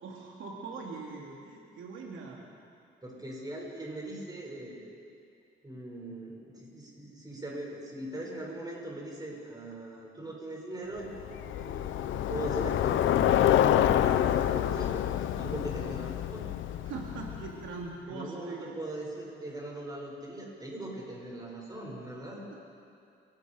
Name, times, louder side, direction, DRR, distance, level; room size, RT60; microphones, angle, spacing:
voice 1, 0.0-2.4 16.9-18.8 22.5-22.6, right 4 dB, 80° right, -1 dB, 2.8 m, -41 dB
voice 2, 3.0-4.9 5.6-11.1 11.5-16.5 18.1-22.5, right 1 dB, 20° right, -2 dB, 7.0 m, -40 dB
Bicycle, 11.1-17.7, left 11 dB, 80° left, 0.9 m, -27 dB
29.5 x 18.5 x 5.2 m, 2.5 s
cardioid pair, 90°, 20 cm